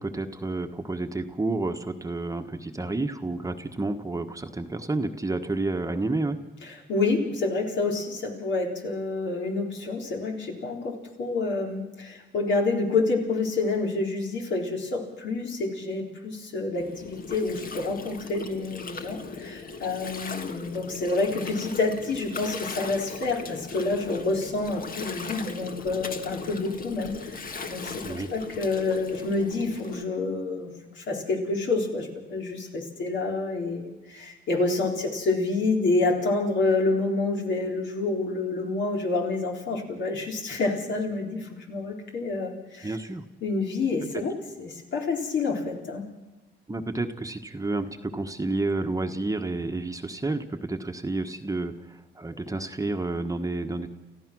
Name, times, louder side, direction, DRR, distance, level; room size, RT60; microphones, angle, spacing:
voice 1, 0.0-6.4 28.0-28.3 42.8-43.2 46.7-53.9, right 2 dB, 15° right, 6 dB, 1.3 m, -30 dB
voice 2, 6.9-28.0 28.3-42.9 43.4-46.0, left 3 dB, 65° left, 0 dB, 4.1 m, -28 dB
Gurgling, 16.7-30.0, left 4 dB, 45° left, 1.6 m, -39 dB
29.5 x 14.5 x 6.2 m, 1.0 s
cardioid pair, 90°, 20 cm